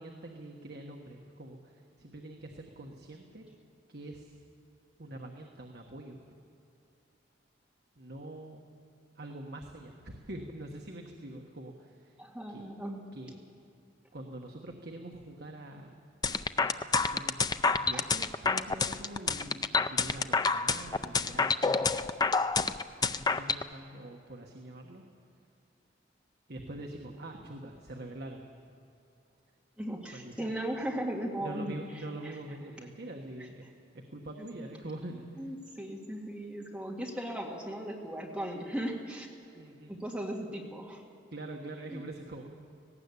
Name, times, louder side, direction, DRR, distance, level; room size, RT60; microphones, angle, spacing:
voice 1, 0.0-3.5 3.9-4.4 5.0-6.2 8.0-8.7 9.1-12.2 12.5-12.7 13.1-13.5 14.1-15.9 16.6-22.1 23.1-25.0 26.5-28.5 30.1-30.5 31.4-33.7 33.9-35.5 39.5-40.0 41.3-42.5, right 1 dB, 55° right, 1 dB, 1.4 m, -44 dB
voice 2, 12.2-13.1 17.9-18.1 29.8-31.8 32.2-32.3 34.6-34.7 35.4-39.3 39.9-41.0 41.9-42.0, right 1 dB, 5° right, -2 dB, 2.0 m, -37 dB
sound 1, 16.2-23.6, left 4 dB, 20° left, 0.4 m, -28 dB
18.5 x 17.5 x 8.4 m, 2.6 s
head